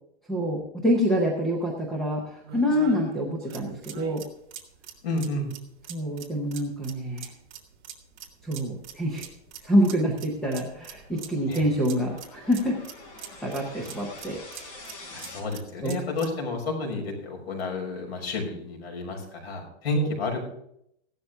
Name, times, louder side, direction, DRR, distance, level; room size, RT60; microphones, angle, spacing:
voice 1, 0.3-4.2 5.9-7.3 8.4-9.3 9.6-12.8 13.4-14.4 15.8-16.0 20.0-20.1, equal, ahead, -2 dB, 0.5 m, -26 dB
sound 1, 1.1-1.2 1.7-6.7 7.1-7.2 7.9-8.1 8.4-8.5 9.4-9.5 9.8-10.0 10.5-10.7 11.0-11.1 13.2-13.3 14.6-14.9 15.3-15.7 16.1-16.3 16.6-16.7 17.7-17.9 18.5-19.2 19.6-19.7, right 4 dB, 65° right, 3.2 m, -44 dB
sound 2, 3.5-16.4, right 10 dB, 40° right, 2.2 m, -45 dB
voice 2, 5.0-5.5 11.5-11.6 15.1-20.4, left 3 dB, 65° left, 3 dB, 6.1 m, -30 dB
sound 3, 8.4-15.4, left 2 dB, 35° left, 4.3 m, -47 dB
16.0 x 12.5 x 3.4 m, 0.72 s
supercardioid pair, 180°, 34 cm